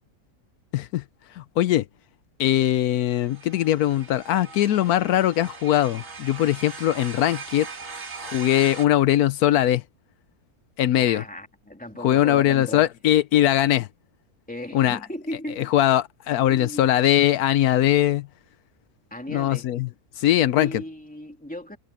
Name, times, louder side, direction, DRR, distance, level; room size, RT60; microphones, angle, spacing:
voice 1, 0.7-1.0 1.4-1.8 2.4-7.7 8.2-9.8 10.8-11.2 12.0-13.9 14.7-15.0 15.6-18.3 19.3-19.9 20.2-20.8, left 12 dB, 85° left, 1.1 m, -21 dB
sound 1, 3.1-8.9, right 4 dB, 60° right, 2.4 m, -40 dB
voice 2, 11.0-12.9 14.5-15.7 16.5-17.0 19.1-19.7 20.5-21.8, left 1 dB, 5° left, 2.9 m, -36 dB
omnidirectional pair, 1.6 m